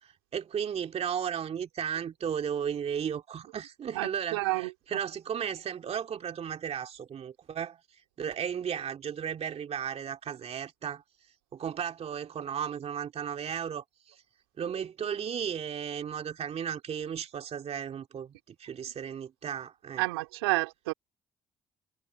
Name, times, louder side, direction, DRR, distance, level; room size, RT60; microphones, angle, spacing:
voice 1, 0.0-7.8 8.2-11.0 11.5-14.2 14.6-20.0, right 8 dB, 55° right, 2.4 m, -35 dB
voice 2, 3.9-4.7 20.0-20.9, right 23 dB, 85° right, 2.9 m, -29 dB
hypercardioid pair, 45°, 13 cm